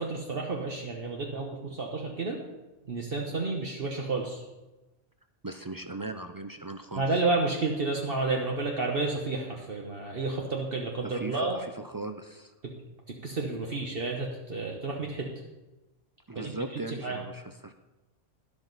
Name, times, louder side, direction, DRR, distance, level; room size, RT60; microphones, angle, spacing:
voice 1, 0.0-2.4 2.9-4.4 7.0-11.6 13.1-15.3 16.3-17.2, right 3 dB, 55° right, 0 dB, 1.3 m, -31 dB
voice 2, 5.4-7.2 11.0-12.5 16.3-17.7, right 2 dB, 35° right, 7 dB, 0.3 m, -38 dB
12.5 x 11.0 x 4.1 m, 1.1 s
omnidirectional pair, 1.2 m